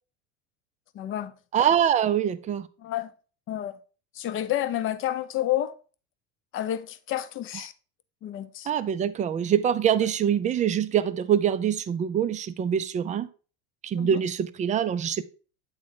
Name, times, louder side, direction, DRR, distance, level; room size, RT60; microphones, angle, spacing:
voice 1, 0.9-1.3 2.8-3.1 3.5-3.8 4.1-5.7 6.5-7.7 8.2-8.7 13.9-14.2, left 12 dB, 40° left, 0.6 m, -30 dB
voice 2, 1.5-2.7 8.7-13.3 13.8-15.2, right 9 dB, 25° right, 0.4 m, -24 dB
8.7 x 3.8 x 3.7 m
supercardioid pair, 120°, 33 cm